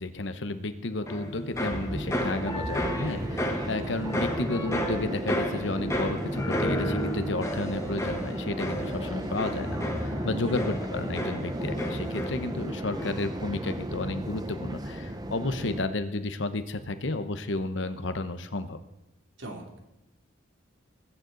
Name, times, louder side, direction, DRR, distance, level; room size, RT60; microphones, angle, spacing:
voice 1, 0.0-18.8, left 2 dB, 60° left, 10 dB, 0.9 m, -32 dB
sound 1, 1.1-12.7 12.9-13.5, equal, 15° left, 1.4 m, -33 dB
sound 2, 1.5-15.8, right 1 dB, 20° right, 0.8 m, -34 dB
voice 2, 10.3-10.8 19.4-19.8, right 1 dB, 65° right, 2 dB, 2.6 m, -41 dB
20.5 x 9.6 x 4.0 m, 0.96 s
head